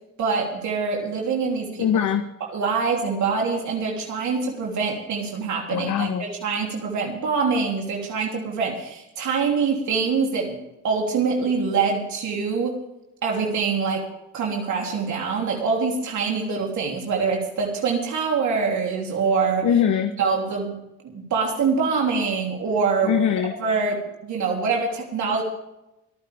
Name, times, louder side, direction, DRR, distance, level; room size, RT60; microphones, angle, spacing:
voice 1, 0.2-1.8 2.4-10.6 10.8-12.8 13.2-14.1 14.3-19.7 20.2-20.8 21.0-23.2 23.6-25.4, right 5 dB, 70° right, -1 dB, 3.4 m, -24 dB
voice 2, 1.8-2.2 5.7-6.2 19.6-20.1 23.0-23.5, left 9 dB, 70° left, 7 dB, 1.2 m, -21 dB
26.0 x 9.7 x 3.6 m, 0.91 s
cardioid pair, 90°, 30 cm